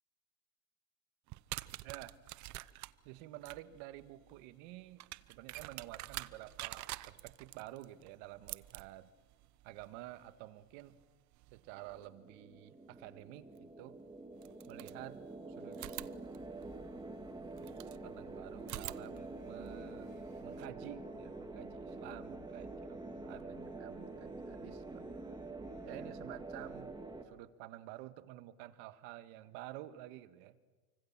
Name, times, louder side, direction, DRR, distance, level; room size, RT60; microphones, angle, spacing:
sound 1, 1.3-12.1 13.6-13.7 14.4-15.4 15.7-18.0 18.6-20.7, right 18 dB, 55° right, 0.9 m, -49 dB
voice 1, 1.8-2.2 3.0-9.1 9.6-11.0 11.5-14.0 14.7-15.3 15.6-15.8 18.0-20.1 20.4-25.2 25.8-26.9 27.2-30.6, right 15 dB, 75° right, 11 dB, 1.7 m, -50 dB
sound 2, 11.8-27.3, right 2 dB, 10° right, 2.3 m, -47 dB
sound 3, 19.1-26.8, left 4 dB, 20° left, 3.4 m, -67 dB
29.5 x 25.0 x 7.5 m, 1.3 s
cardioid pair, 130°, 35 cm